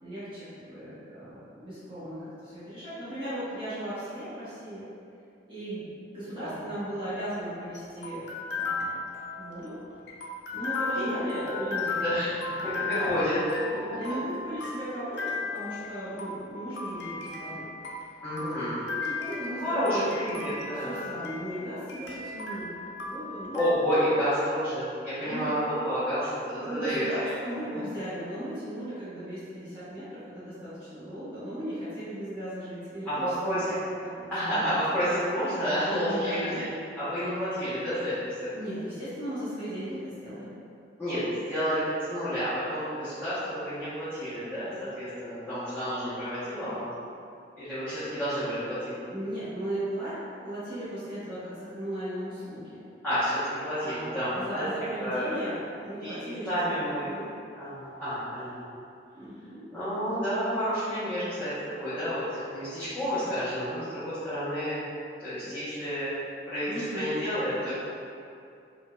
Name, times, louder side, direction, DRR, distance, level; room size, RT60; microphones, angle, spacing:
voice 1, 0.0-4.8 5.5-9.0 9.4-9.8 10.5-12.0 12.8-13.2 14.0-17.7 18.4-20.2 20.5-23.7 25.2-25.5 26.6-34.6 34.9-35.0 36.1-36.6 38.5-40.5 48.0-48.1 48.8-50.2 50.4-52.9 53.8-57.3 59.1-59.6 66.7-67.1, right 1 dB, 30° right, -14 dB, 1.1 m, -37 dB
sound 1, 7.1-23.7, left 3 dB, 70° left, 0.5 m, -36 dB
voice 2, 12.0-13.6 18.2-18.8 19.6-21.0 23.5-27.1 33.0-33.8 34.3-36.6 37.0-38.1 38.4-38.5 41.0-46.9 47.6-48.9 53.0-54.7 55.0-55.4 56.0-57.1 57.5-58.8 59.7-61.5 61.8-64.8 65.2-66.1 66.4-67.7, equal, 10° left, -19 dB, 1.2 m, -30 dB
4.7 x 2.7 x 2.4 m, 2.5 s
head